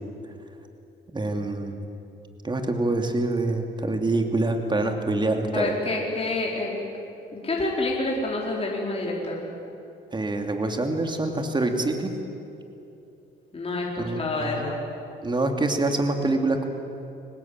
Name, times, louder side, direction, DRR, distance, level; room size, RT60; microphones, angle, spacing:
voice 1, 1.1-1.8 2.4-5.7 10.1-12.1 14.0-14.7 15.2-16.6, right 2 dB, 25° right, 4 dB, 2.8 m, -25 dB
voice 2, 5.5-6.8 7.3-9.4 13.5-14.8, left 2 dB, 30° left, -3 dB, 4.7 m, -28 dB
24.5 x 19.5 x 9.1 m, 2.8 s
cardioid pair, 90°, 20 cm